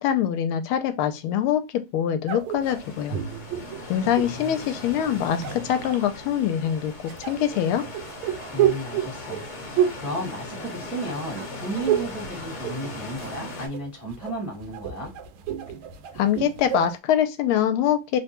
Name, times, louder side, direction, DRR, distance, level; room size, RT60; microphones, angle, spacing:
voice 1, 0.0-1.6 1.9-3.2 3.9-7.8 16.2-18.2, left 10 dB, 80° left, 1.4 m, -24 dB
sound 1, 2.3-4.5 5.2-6.0 7.1-11.1 11.4-12.2 12.5-13.4 13.7-17.0, right 10 dB, 75° right, 1.3 m, -29 dB
sound 2, 2.6-13.7, left 2 dB, 40° left, 1.2 m, -38 dB
voice 2, 3.9-4.6 8.5-15.1, right 1 dB, ahead, 0.7 m, -34 dB
3.6 x 2.1 x 2.8 m
omnidirectional pair, 2.4 m